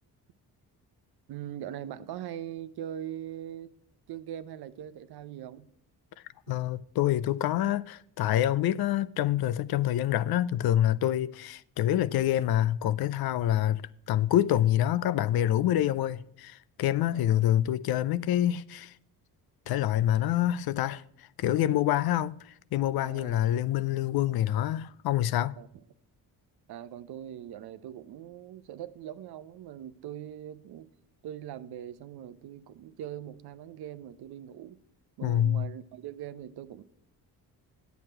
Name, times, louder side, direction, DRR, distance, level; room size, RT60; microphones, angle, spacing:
voice 1, 1.3-3.7 4.1-5.7 17.1-17.4 23.0-23.4 25.6-25.8 26.7-30.9 31.2-34.8 35.2-36.8, right 10 dB, 70° right, 0.7 m, -41 dB
voice 2, 6.5-18.9 19.7-21.0 21.4-22.4 22.7-25.5 35.2-35.7, left 12 dB, 65° left, 0.5 m, -26 dB
9.3 x 8.2 x 4.4 m
cardioid pair, 70°, 40 cm